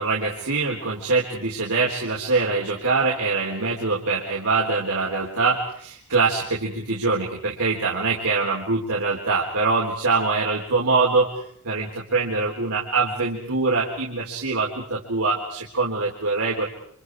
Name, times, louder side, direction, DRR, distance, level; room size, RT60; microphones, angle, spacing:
voice 1, 0.0-11.3 11.6-16.7, right 3 dB, 85° right, -4 dB, 4.1 m, -23 dB
29.5 x 27.0 x 4.9 m, 0.65 s
head